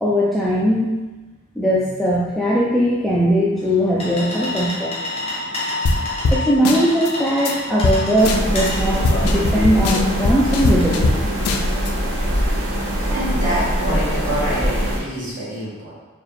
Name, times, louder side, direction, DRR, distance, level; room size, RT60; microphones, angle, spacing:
voice 1, 0.0-0.9 1.6-5.0 6.3-11.2 13.0-13.1, equal, ahead, -8 dB, 0.3 m, -19 dB
sound 1, 3.5-11.5, left 2 dB, 25° left, 0.7 m, -30 dB
sound 2, 5.9-6.0 6.2-6.4 6.7-7.1 7.5-7.6 7.8-8.0 8.3-8.7 9.0-11.2 11.5-11.9, left 3 dB, 75° left, 0.4 m, -20 dB
sound 3, 8.2-15.0, equal, 65° right, 0.9 m, -22 dB
voice 2, 13.1-16.0, right 1 dB, 35° right, -8 dB, 1.4 m, -26 dB
4.6 x 2.4 x 3.2 m, 1.2 s
head